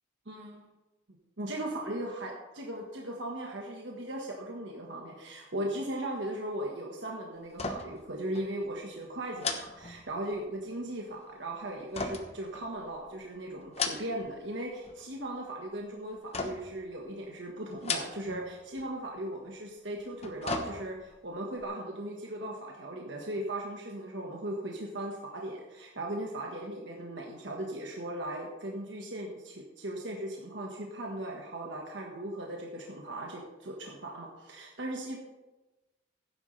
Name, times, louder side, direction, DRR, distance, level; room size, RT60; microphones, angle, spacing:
voice 1, 0.2-0.7 1.4-35.2, right 1 dB, 70° right, -1 dB, 1.5 m, -38 dB
sound 1, 7.5-8.1 8.3-8.5 9.4-10.5 11.9-13.1 13.6-14.4 14.7-15.2 16.3-16.8 17.7-18.5 18.8-18.9 20.0-21.2 21.6-21.7, left 4 dB, 35° left, 1.0 m, -36 dB
15.5 x 9.8 x 3.4 m, 1.1 s
head